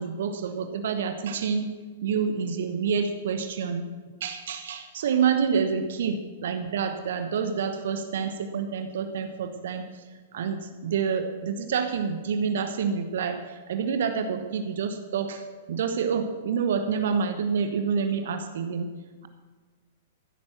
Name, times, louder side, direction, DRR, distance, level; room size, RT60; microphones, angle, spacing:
voice 1, 0.0-3.9 4.2-9.9 10.3-18.9, right 6 dB, 60° right, 8 dB, 1.1 m, -28 dB
14.5 x 8.8 x 6.1 m, 1.4 s
figure-of-eight pair, 105°, 0 cm